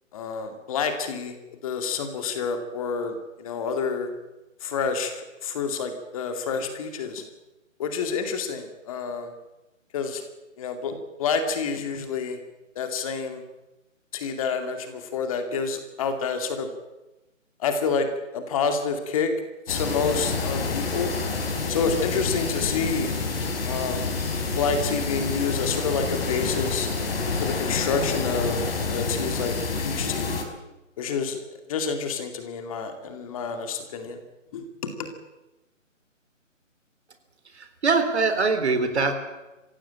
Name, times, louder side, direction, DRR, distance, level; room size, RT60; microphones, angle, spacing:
voice 1, 0.1-1.4 1.6-4.1 4.6-7.2 7.8-9.3 9.9-10.2 10.6-12.4 12.8-13.4 14.1-16.7 17.6-18.1 18.3-19.3 19.7-21.1 21.7-23.2 23.6-24.1 24.6-26.9 27.4-30.4 31.0-34.2 34.5-34.6 35.0-35.1, left 5 dB, 25° left, 7 dB, 2.4 m, -28 dB
sound 1, 19.7-30.4, left 4 dB, 45° left, 4.4 m, -28 dB
voice 2, 37.6-39.1, right 4 dB, 55° right, 8 dB, 3.9 m, -23 dB
26.5 x 16.5 x 8.8 m, 1.0 s
figure-of-eight pair, 150°, 39 cm